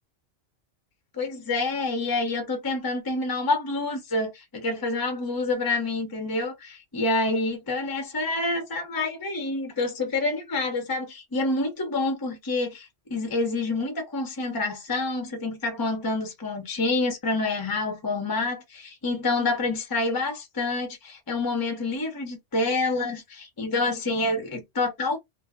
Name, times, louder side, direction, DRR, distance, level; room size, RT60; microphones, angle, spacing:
voice 1, 1.1-25.2, left 2 dB, 25° left, 0.5 m, -27 dB
2.1 x 2.0 x 3.4 m
omnidirectional pair, 1.2 m